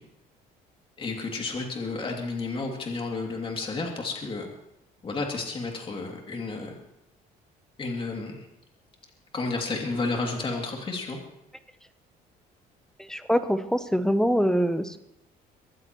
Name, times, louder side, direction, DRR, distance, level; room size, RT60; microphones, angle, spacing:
voice 1, 1.0-4.5 5.0-6.7 7.8-8.5 9.3-11.2, left 3 dB, 30° left, 1 dB, 2.7 m, -31 dB
voice 2, 13.1-15.0, equal, 5° left, 10 dB, 0.9 m, -24 dB
23.0 x 14.5 x 3.1 m, 0.82 s
cardioid pair, 110°, 17 cm